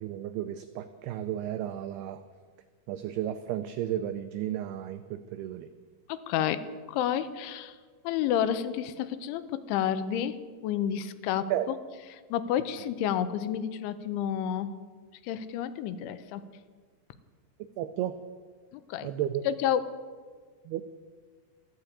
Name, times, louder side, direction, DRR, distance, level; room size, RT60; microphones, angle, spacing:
voice 1, 0.0-2.2 2.9-5.7 11.5-11.7 17.8-18.2 19.0-19.5 20.7-20.8, right 11 dB, 85° right, 10 dB, 2.2 m, -33 dB
voice 2, 6.1-6.6 6.9-7.8 8.0-11.5 12.3-14.7 15.2-16.4 18.7-19.1 19.5-20.0, left 10 dB, 85° left, 12 dB, 3.1 m, -30 dB
14.5 x 12.0 x 8.2 m, 1.5 s
omnidirectional pair, 5.3 m